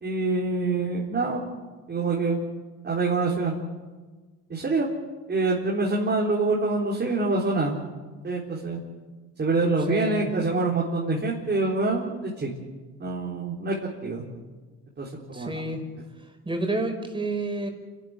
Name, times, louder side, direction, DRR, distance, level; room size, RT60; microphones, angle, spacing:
voice 1, 0.0-1.4 1.9-2.4 2.8-3.6 4.5-4.9 5.3-7.8 8.2-8.8 9.4-12.5 13.0-13.8 14.0-14.2 15.0-15.6, right 3 dB, 35° right, -3 dB, 4.1 m, -25 dB
voice 2, 9.9-10.3 15.2-15.8 16.5-17.7, right 2 dB, 15° right, 4 dB, 5.5 m, -29 dB
28.5 x 12.5 x 9.6 m, 1.3 s
cardioid pair, 90°, 30 cm